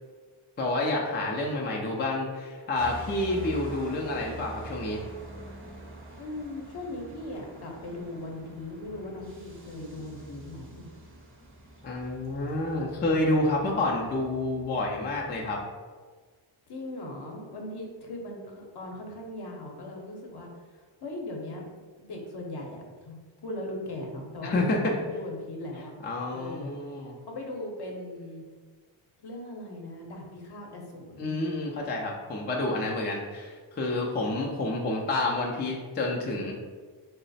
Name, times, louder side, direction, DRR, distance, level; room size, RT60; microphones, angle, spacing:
voice 1, 0.6-5.0 11.8-15.6 24.4-24.9 26.0-27.2 31.2-36.5, left 2 dB, 25° left, -2 dB, 0.3 m, -29 dB
sound 1, 2.7-15.6, right 2 dB, 25° right, 0.6 m, -45 dB
voice 2, 6.2-10.9 16.7-25.9 26.3-26.7 27.3-28.4 29.2-31.3, left 1 dB, 50° left, 0 dB, 0.7 m, -39 dB
3.1 x 2.0 x 3.9 m, 1.5 s
cardioid pair, 110°, 49 cm